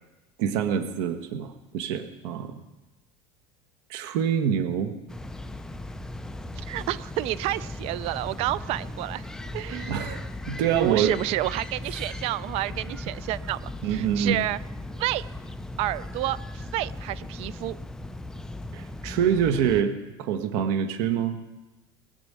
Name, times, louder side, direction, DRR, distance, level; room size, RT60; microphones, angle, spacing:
voice 1, 0.4-2.6 3.9-4.9 9.7-11.1 13.8-14.4 18.7-19.9 20.2-21.4, right 8 dB, 70° right, 8 dB, 1.5 m, -26 dB
sound 1, 5.1-19.8, left 1 dB, 5° left, 0.5 m, -37 dB
voice 2, 6.7-9.3 9.5-9.9 10.8-14.6 15.0-15.2 15.8-17.8, right 16 dB, 55° right, 19 dB, 0.5 m, -29 dB
20.0 x 7.0 x 8.2 m, 1.1 s
supercardioid pair, 135°, 13 cm